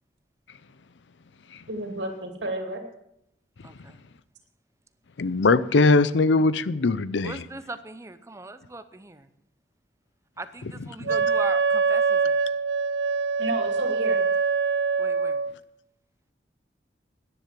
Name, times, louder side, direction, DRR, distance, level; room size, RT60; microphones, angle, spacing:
voice 1, 1.7-2.8 13.4-14.2, right 1 dB, 85° right, 2.5 m, -31 dB
voice 2, 3.6-4.0 7.2-9.3 10.4-12.4 15.0-15.4, right 2 dB, 15° right, 0.7 m, -40 dB
voice 3, 5.2-7.4 11.0-11.1, left 3 dB, 90° left, 0.6 m, -21 dB
Wind instrument woodwind instrument, 11.1-15.5, right 5 dB, 65° right, 0.4 m, -24 dB
10.5 x 10.5 x 7.5 m
head